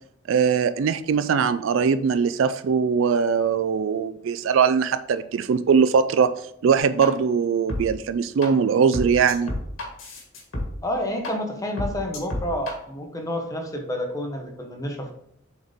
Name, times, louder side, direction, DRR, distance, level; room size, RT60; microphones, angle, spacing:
voice 1, 0.3-6.3 6.6-9.5, right 6 dB, 70° right, 13 dB, 0.4 m, -21 dB
sound 1, 7.0-7.1 7.7-7.8 8.4-8.5 8.9-10.7 11.2-11.3 11.8-12.7, left 1 dB, 75° left, 1.8 m, -29 dB
voice 2, 10.8-15.1, left 1 dB, 15° left, 3 dB, 0.9 m, -29 dB
7.0 x 4.1 x 3.5 m, 0.72 s
head